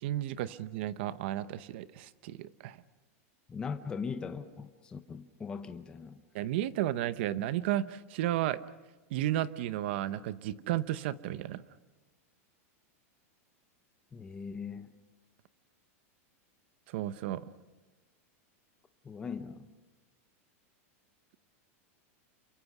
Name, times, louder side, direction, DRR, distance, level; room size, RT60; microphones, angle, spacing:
voice 1, 0.0-2.8 6.3-8.6 9.1-11.6 16.9-17.5, right 13 dB, 50° right, 0.8 m, -33 dB
voice 2, 3.5-6.2 14.1-14.9 19.0-19.7, left 5 dB, 10° left, 0.7 m, -40 dB
28.0 x 23.0 x 6.0 m
supercardioid pair, 170°, 8 cm